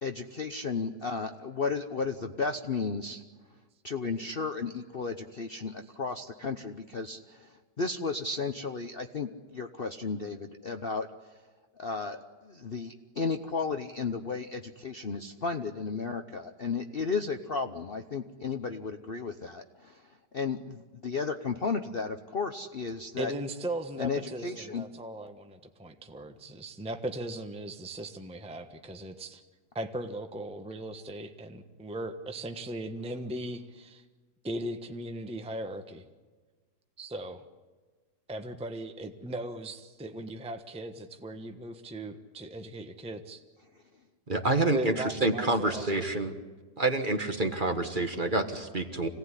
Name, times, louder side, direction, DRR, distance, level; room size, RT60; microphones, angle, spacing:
voice 1, 0.0-3.2 3.8-11.1 11.8-20.0 20.3-23.3 24.0-24.8, left 4 dB, 45° left, 6 dB, 0.9 m, -34 dB
voice 2, 23.2-29.4 29.7-34.0 34.4-36.0 37.0-37.4 38.3-43.4 44.7-46.1, right 1 dB, 5° right, 6 dB, 1.0 m, -38 dB
voice 3, 44.3-46.3 46.8-49.1, right 2 dB, 30° right, 6 dB, 1.6 m, -28 dB
26.5 x 17.5 x 9.8 m, 1.4 s
omnidirectional pair, 1.9 m